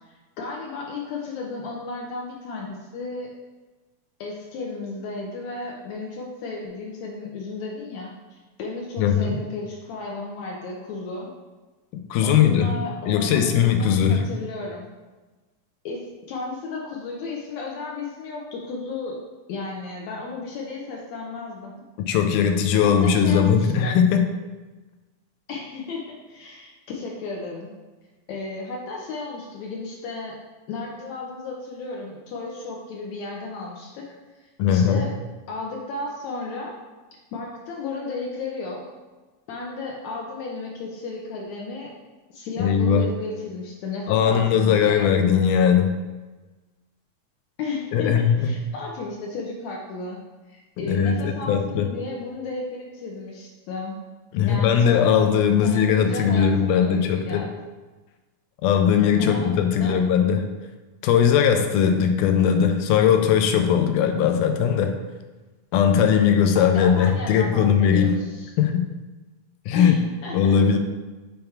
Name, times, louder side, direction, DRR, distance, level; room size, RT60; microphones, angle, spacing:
voice 1, 0.4-3.3 4.2-11.3 12.2-14.9 15.8-19.2 19.5-21.7 22.8-24.0 25.5-27.7 28.3-30.4 30.7-34.1 34.7-35.1 35.5-36.7 37.3-38.8 39.5-41.9 42.3-45.1 47.6-50.2 50.5-53.9 54.4-55.2 55.6-57.5 59.2-60.0 66.7-68.5 69.7-70.8, left 3 dB, 70° left, -2 dB, 1.9 m, -34 dB
voice 2, 9.0-9.3 11.9-12.7 13.1-14.3 22.0-24.2 34.6-35.1 42.6-43.0 44.1-46.0 47.9-48.5 50.8-51.9 54.3-57.5 58.6-60.5 61.0-65.0 65.7-68.2 68.6-68.9 69.7-70.0 70.3-70.8, left 7 dB, 90° left, 6 dB, 2.1 m, -19 dB
7.0 x 3.5 x 4.4 m, 1.2 s
omnidirectional pair, 3.6 m